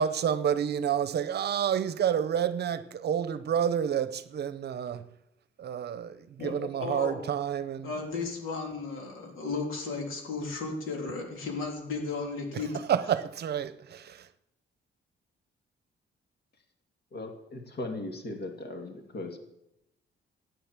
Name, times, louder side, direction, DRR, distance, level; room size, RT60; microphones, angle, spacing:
voice 1, 0.0-5.0 5.6-7.9 12.5-14.3, right 8 dB, 55° right, 0.8 m, -29 dB
voice 2, 6.4-7.3 7.8-12.7, left 4 dB, 90° left, 3.6 m, -34 dB
voice 3, 17.1-19.4, left 2 dB, 50° left, 2.5 m, -38 dB
15.0 x 9.6 x 7.4 m
cardioid pair, 160°, 21 cm